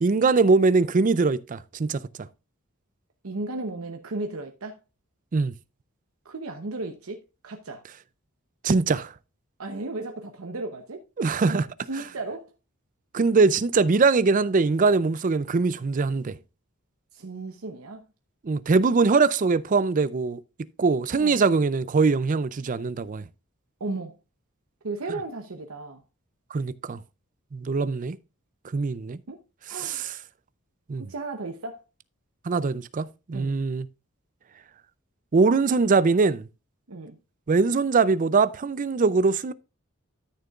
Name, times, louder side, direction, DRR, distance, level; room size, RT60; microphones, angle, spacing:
voice 1, 0.0-2.0 5.3-5.5 8.6-9.1 11.2-11.7 13.1-16.4 18.4-20.4 20.8-23.2 26.5-27.0 27.5-28.2 28.7-29.2 29.7-30.1 30.9-31.0 32.5-33.9 35.3-36.5 37.5-39.5, right 4 dB, 40° right, 0.4 m, -22 dB
voice 2, 3.2-4.8 6.2-7.2 7.4-7.8 9.6-11.0 11.5-11.6 11.9-12.5 17.1-18.1 21.2-21.4 23.8-24.2 24.8-26.0 29.3-29.4 29.7-30.0 31.0-31.8 33.3-33.6 36.9-37.2, right 2 dB, 80° right, 0.9 m, -35 dB
12.5 x 6.7 x 2.4 m
head